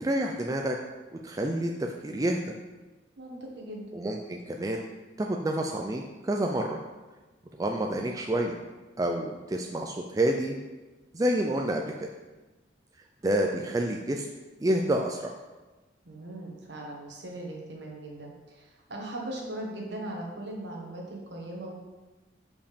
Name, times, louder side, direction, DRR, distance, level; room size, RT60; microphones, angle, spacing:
voice 1, 0.0-0.8 1.2-2.5 3.9-4.9 5.2-6.8 7.6-8.6 9.0-10.6 11.1-11.8 13.2-14.3 14.6-15.3, right 1 dB, 20° right, 1 dB, 0.3 m, -28 dB
voice 2, 3.2-3.8 16.0-21.7, right 1 dB, 65° right, -1 dB, 1.4 m, -39 dB
5.2 x 5.1 x 5.1 m, 1.2 s
head